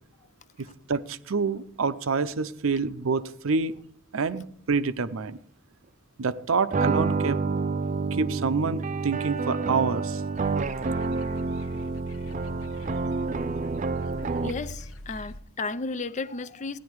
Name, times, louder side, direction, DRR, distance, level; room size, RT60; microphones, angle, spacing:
voice 1, 0.6-3.7 4.1-5.4 6.2-7.4 8.1-10.2, right 4 dB, 85° right, 0.6 m, -27 dB
sound 1, 6.7-14.8, right 4 dB, 35° right, 0.5 m, -28 dB
sound 2, 10.3-15.4, left 1 dB, 90° left, 0.9 m, -42 dB
voice 2, 14.4-16.8, left 3 dB, 35° left, 0.5 m, -34 dB
16.0 x 10.0 x 4.7 m
head